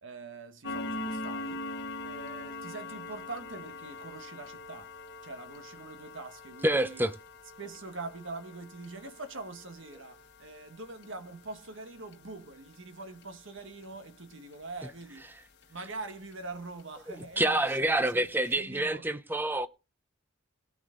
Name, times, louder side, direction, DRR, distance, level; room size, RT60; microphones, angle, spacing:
voice 1, 0.0-4.9 5.2-7.1 7.6-15.3 15.7-19.0, right 3 dB, 65° right, 1.4 m, -44 dB
sound 1, 0.6-15.8 16.1-16.3 16.8-16.9 17.3-17.4 17.9-18.0 18.3-18.4, left 2 dB, 55° left, 1.3 m, -43 dB
voice 2, 6.6-7.1 17.1-19.7, right 1 dB, 10° right, 0.7 m, -27 dB
18.0 x 8.0 x 3.8 m
head